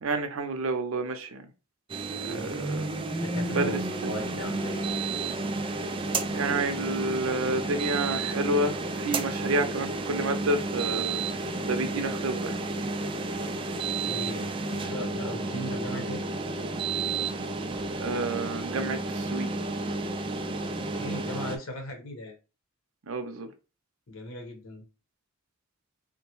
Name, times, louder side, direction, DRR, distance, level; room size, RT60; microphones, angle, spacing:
voice 1, 0.0-1.4 2.1-3.0 3.5-3.7 6.3-11.2 11.6-12.5 18.0-19.5 23.1-23.5, right 2 dB, 75° right, 0.6 m, -29 dB
sound 1, 1.9-21.6, right 3 dB, 25° right, 0.4 m, -31 dB
voice 2, 2.3-2.6 3.2-4.8 14.0-16.2 20.9-22.4 24.1-24.8, left 1 dB, 75° left, 1.0 m, -38 dB
3.8 x 2.2 x 3.0 m
head